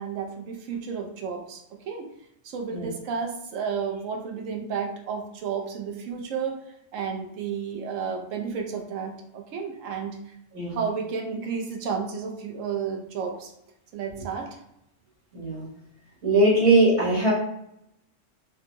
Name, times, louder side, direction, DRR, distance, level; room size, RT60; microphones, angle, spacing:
voice 1, 0.0-2.1 2.4-6.6 6.9-10.2 10.7-13.5 13.9-14.6, right 6 dB, 85° right, 2 dB, 1.0 m, -32 dB
voice 2, 15.3-15.6 16.2-17.3, right 2 dB, 65° right, -6 dB, 1.6 m, -20 dB
4.2 x 2.1 x 3.0 m, 0.79 s
omnidirectional pair, 1.3 m